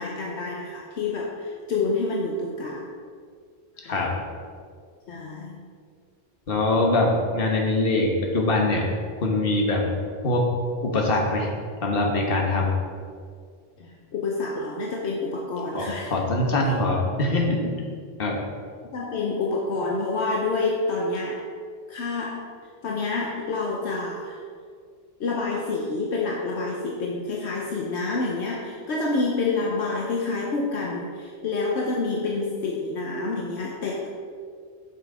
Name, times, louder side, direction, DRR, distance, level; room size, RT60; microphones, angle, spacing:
voice 1, 0.0-2.9 3.8-4.2 5.1-5.7 13.8-16.1 16.6-16.7 18.9-21.4 21.9-22.5 22.8-24.4 25.2-34.1, left 3 dB, 75° left, -1 dB, 1.1 m, -28 dB
voice 2, 3.8-4.1 6.5-8.8 9.2-9.9 10.2-10.5 10.8-11.5 11.8-12.8 15.7-17.9 18.2-18.4, left 2 dB, 55° left, 0 dB, 1.4 m, -23 dB
7.0 x 6.2 x 4.8 m, 2.1 s
omnidirectional pair, 1.2 m